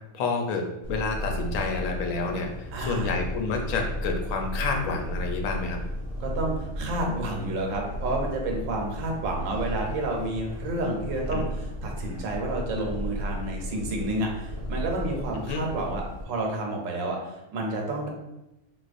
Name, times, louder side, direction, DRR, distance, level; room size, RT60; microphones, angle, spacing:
voice 1, 0.1-2.5 2.8-5.8 11.3-11.4 15.5-15.6, left 4 dB, 80° left, 2 dB, 1.0 m, -29 dB
Purr, 0.8-16.2, equal, 45° left, 0.4 m, -34 dB
voice 2, 2.7-3.1 6.2-18.1, right 1 dB, 75° right, 0 dB, 1.0 m, -30 dB
4.0 x 2.3 x 2.4 m, 0.93 s
omnidirectional pair, 1.4 m